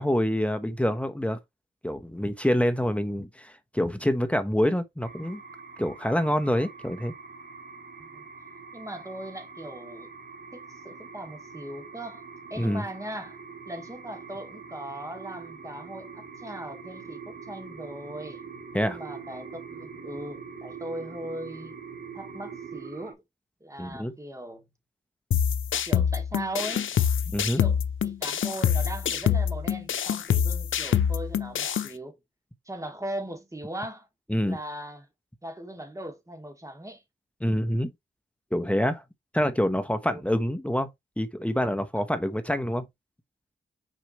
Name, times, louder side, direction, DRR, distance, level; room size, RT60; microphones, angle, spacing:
voice 1, 0.0-1.4 1.8-5.4 5.8-7.1 12.6-12.8 18.7-19.0 23.8-24.1 27.3-27.6 34.3-34.6 37.4-37.9 38.5-39.0 39.3-40.9 41.2-42.8, equal, 5° left, 1.0 m, -26 dB
sound 1, 5.0-23.1, right 5 dB, 60° right, 2.3 m, -43 dB
voice 2, 8.7-10.1 10.5-12.2 12.5-18.4 18.8-21.7 22.1-23.2 23.6-24.7 25.9-26.9 27.6-32.2 32.7-34.1 34.5-35.1 35.4-37.0 40.0-40.2 42.0-42.1, right 1 dB, 15° right, 2.3 m, -39 dB
sound 2, 25.3-31.9, left 8 dB, 85° left, 0.7 m, -25 dB
6.3 x 4.9 x 3.0 m
cardioid pair, 70°, 20 cm